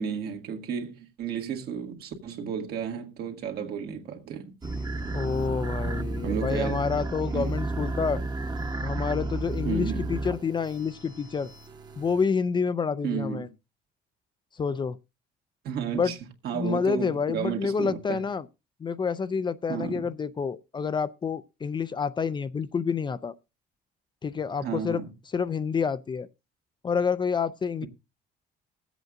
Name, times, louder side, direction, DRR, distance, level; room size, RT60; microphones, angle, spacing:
voice 1, 0.0-4.5 6.2-6.8 7.3-7.5 9.7-10.1 13.0-13.5 15.6-16.2 16.4-18.2 19.7-20.0 24.6-25.1, right 7 dB, 70° right, 1.9 m, -32 dB
sound 1, 4.6-12.2, right 2 dB, 25° right, 1.1 m, -32 dB
voice 2, 5.1-8.2 8.8-11.5 12.0-13.5 14.5-15.0 15.9-16.1 16.5-18.5 18.8-23.4 24.2-25.0 25.3-26.3 26.8-27.9, left 5 dB, 25° left, 0.5 m, -28 dB
21.0 x 8.0 x 2.5 m
cardioid pair, 110°, 17 cm